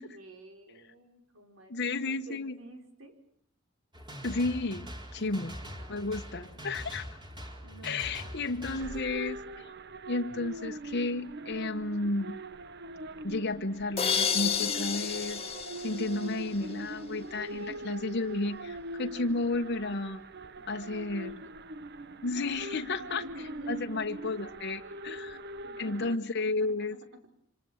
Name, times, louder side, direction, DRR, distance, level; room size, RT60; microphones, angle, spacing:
voice 1, 0.1-1.8 2.1-3.2 5.1-6.5 7.6-8.8 17.5-18.0 20.5-21.5 22.7-23.9 25.4-27.0, right 1 dB, 85° right, 6 dB, 5.4 m, -51 dB
voice 2, 1.7-2.6 4.2-5.5 5.9-7.0 7.8-9.7 10.1-12.3 13.2-15.4 15.8-20.2 20.7-21.3 22.2-23.2 23.7-25.4 25.8-26.9, left 2 dB, 55° left, 4 dB, 1.2 m, -32 dB
sound 1, 3.9-9.0, equal, 20° right, 4.5 m, -43 dB
sound 2, 8.8-26.2, right 1 dB, 55° right, 1.0 m, -42 dB
sound 3, 14.0-16.8, left 7 dB, 30° left, 1.7 m, -31 dB
27.0 x 26.5 x 7.3 m, 0.62 s
head